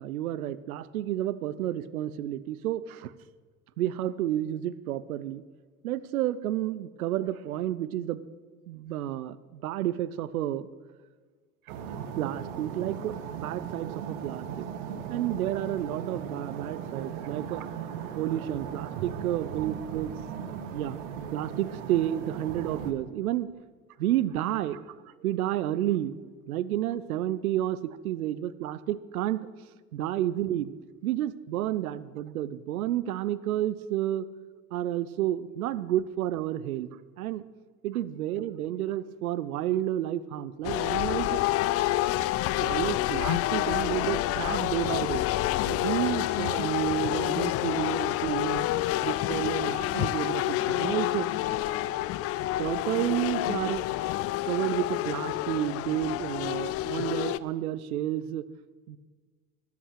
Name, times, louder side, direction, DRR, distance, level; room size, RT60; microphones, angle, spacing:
voice 1, 0.0-3.1 3.8-5.4 5.8-8.2 8.7-10.7 12.2-14.7 15.1-17.7 18.2-20.1 20.7-21.0 21.3-23.5 24.0-26.1 26.5-29.5 29.9-30.7 31.0-34.3 34.7-36.9 37.2-37.4 37.8-41.4 42.6-45.2 45.7-48.6 49.0-51.3 52.6-53.8 54.4-58.5 58.9-59.0, right 13 dB, 85° right, 17 dB, 0.6 m, -30 dB
sound 1, 11.7-22.9, right 8 dB, 65° right, 1.2 m, -38 dB
sound 2, 40.6-57.4, left 15 dB, 35° left, 0.4 m, -28 dB
12.5 x 8.3 x 6.5 m, 1.4 s
hypercardioid pair, 75°, 42 cm